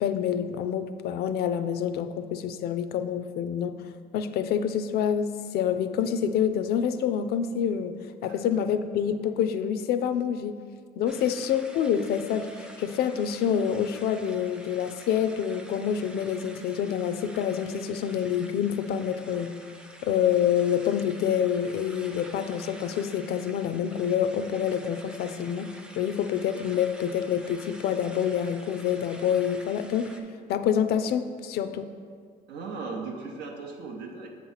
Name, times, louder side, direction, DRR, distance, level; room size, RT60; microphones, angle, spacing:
voice 1, 0.0-3.8 4.1-8.0 8.2-10.6 11.0-19.5 20.0-25.7 26.0-30.1 30.5-31.9, left 8 dB, 70° left, 10 dB, 0.4 m, -27 dB
voice 2, 8.3-8.6 11.1-11.3 32.5-34.3, right 4 dB, 80° right, 1 dB, 0.7 m, -38 dB
sound 1, 11.1-30.2, right 1 dB, 5° right, 0.4 m, -48 dB
7.1 x 2.9 x 5.6 m, 2.1 s
cardioid pair, 110°, 17 cm